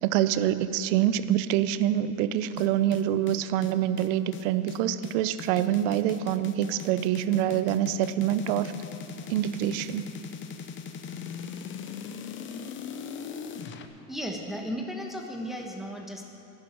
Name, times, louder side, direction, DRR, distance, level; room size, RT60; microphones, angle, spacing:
voice 1, 0.0-8.7 9.3-10.0, right 11 dB, 60° right, 14 dB, 0.7 m, -26 dB
sound 1, 2.6-13.9, left 7 dB, 30° left, 0.7 m, -39 dB
voice 2, 14.1-16.2, equal, ahead, 1 dB, 1.1 m, -35 dB
11.5 x 7.5 x 8.8 m, 2.7 s
supercardioid pair, 115°, 43 cm